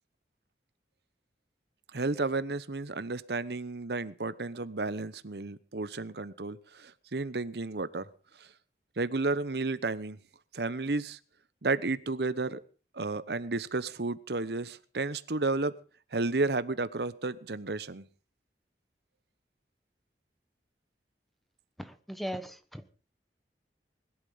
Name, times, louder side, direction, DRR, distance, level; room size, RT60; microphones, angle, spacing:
voice 1, 1.9-8.1 8.4-8.5 9.0-10.2 10.5-11.2 11.6-12.6 12.9-15.7 16.1-18.0, right 3 dB, 70° right, 0.9 m, -32 dB
voice 2, 21.8-22.9, equal, ahead, 1.2 m, -39 dB
21.0 x 12.0 x 5.6 m
head